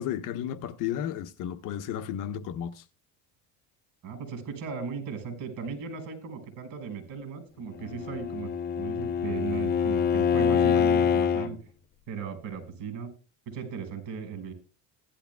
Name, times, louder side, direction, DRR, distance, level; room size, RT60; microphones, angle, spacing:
voice 1, 0.0-2.8, left 10 dB, 55° left, 1.0 m, -33 dB
voice 2, 4.0-11.6 12.1-13.1 13.5-14.5, right 6 dB, 60° right, 5.7 m, -37 dB
Bowed string instrument, 7.8-11.5, left 7 dB, 25° left, 0.5 m, -25 dB
16.5 x 12.0 x 2.3 m
cardioid pair, 135°, 38 cm